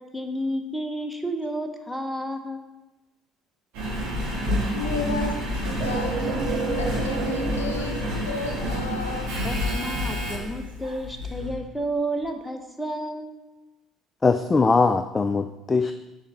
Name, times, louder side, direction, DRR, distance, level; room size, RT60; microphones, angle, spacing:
voice 1, 0.0-2.6 7.8-7.9 9.4-13.3, right 1 dB, 5° left, 5 dB, 0.9 m, -31 dB
Engine, 3.7-11.6 12.2-12.3, equal, 65° right, 2.3 m, -29 dB
voice 2, 4.7-6.2 6.7-9.3, left 3 dB, 80° left, 4 dB, 0.6 m, -32 dB
sound 1, 5.8-9.4, right 4 dB, 45° right, 1.1 m, -31 dB
voice 3, 14.2-15.9, left 4 dB, 25° left, 9 dB, 0.3 m, -21 dB
7.2 x 4.7 x 4.1 m, 1.0 s
figure-of-eight pair, 55°, 0 cm